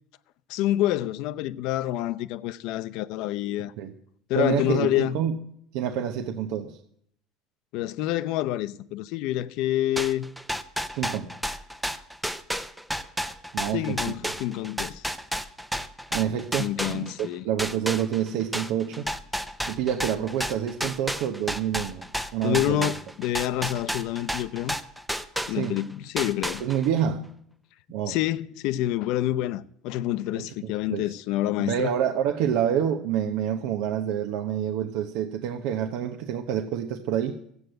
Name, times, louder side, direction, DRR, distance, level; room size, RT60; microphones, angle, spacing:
voice 1, 0.5-3.7 4.3-5.2 7.7-10.3 13.7-15.0 16.6-17.4 22.4-24.8 25.5-26.6 28.1-31.9, left 14 dB, 60° left, 0.6 m, -27 dB
voice 2, 4.3-5.4 5.7-6.8 10.9-11.3 13.5-14.3 16.1-19.1 19.7-22.0 22.3-22.9 25.5-25.8 26.6-27.3 27.9-28.2 30.4-31.2 31.6-37.4, right 9 dB, 70° right, 0.9 m, -28 dB
sound 1, 10.0-17.3 17.6-25.8 26.2-27.0, equal, ahead, 0.5 m, -31 dB
15.0 x 8.0 x 7.8 m
cardioid pair, 170°, 0 cm